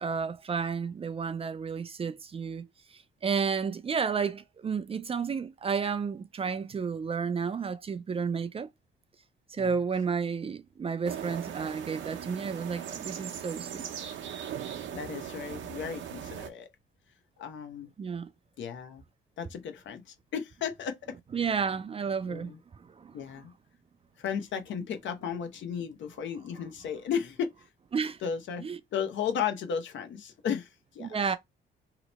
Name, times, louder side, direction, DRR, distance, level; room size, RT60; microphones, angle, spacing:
voice 1, 0.0-8.7 9.5-13.9 18.0-18.3 21.3-22.5 22.8-23.1 27.9-28.2 28.6-28.8 31.0-31.4, right 6 dB, 30° right, 0.4 m, -32 dB
sound 1, 11.0-16.5, right 9 dB, 70° right, 0.7 m, -39 dB
voice 2, 14.9-16.7 17.4-17.9 18.6-19.0 19.4-21.2 22.3-22.6 23.1-23.5 24.2-27.5 28.2-28.6 28.9-30.7 30.9-31.2, left 7 dB, 70° left, 0.7 m, -34 dB
2.9 x 2.1 x 4.0 m
cardioid pair, 90°, 20 cm